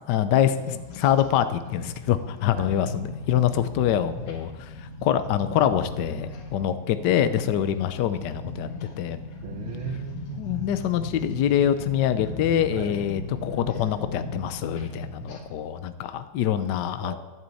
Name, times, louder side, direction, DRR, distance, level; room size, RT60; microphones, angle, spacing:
voice 1, 0.1-4.7 5.0-8.7 9.0-9.2 10.4-17.2, left 10 dB, 65° left, 11 dB, 1.1 m, -25 dB
sound 1, 0.5-15.4, left 3 dB, 90° left, 2.7 m, -37 dB
voice 2, 9.4-10.4 12.7-13.0 17.0-17.2, right 7 dB, 70° right, 3 dB, 2.0 m, -37 dB
11.0 x 9.3 x 8.4 m, 1.2 s
omnidirectional pair, 2.4 m